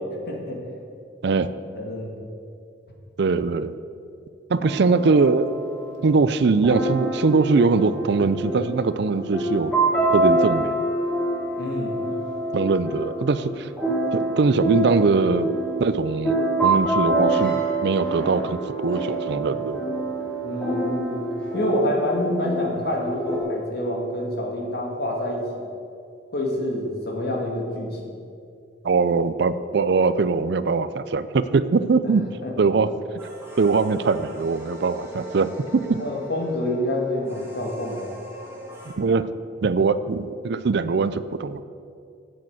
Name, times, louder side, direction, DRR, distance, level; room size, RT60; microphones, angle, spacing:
voice 1, 0.3-0.6 1.7-2.1 11.6-11.9 20.4-21.2 21.5-25.4 26.3-28.1 32.4-32.5 36.0-38.1, left 1 dB, 60° left, 0 dB, 2.2 m, -27 dB
voice 2, 3.2-3.7 4.5-5.5 6.0-9.7 10.1-10.9 12.5-13.7 14.1-15.5 15.8-19.8 28.8-32.2 32.6-32.9 33.6-36.0 39.0-39.3 39.6-41.6, right 4 dB, 65° right, 14 dB, 0.5 m, -22 dB
sound 1, 4.6-23.4, right 2 dB, 5° left, 2.4 m, -26 dB
sound 2, 33.2-38.9, equal, 15° right, 2.5 m, -40 dB
8.7 x 8.5 x 7.9 m, 2.4 s
head